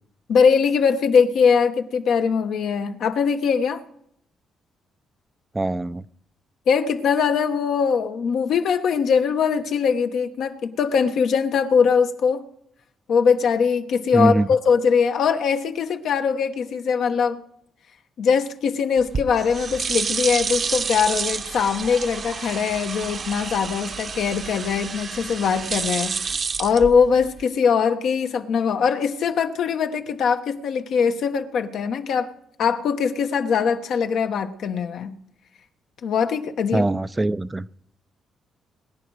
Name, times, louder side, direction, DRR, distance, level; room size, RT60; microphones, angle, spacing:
voice 1, 0.3-3.8 6.7-12.4 13.1-17.4 18.2-26.1 26.6-32.3 32.6-35.1 36.0-36.8, left 6 dB, 70° left, 1.1 m, -21 dB
voice 2, 5.5-6.0 14.1-14.5 36.7-37.7, right 2 dB, 15° right, 0.4 m, -22 dB
sound 1, 19.0-27.4, right 5 dB, 45° right, 0.9 m, -29 dB
21.5 x 10.0 x 4.8 m
cardioid pair, 90°, 0 cm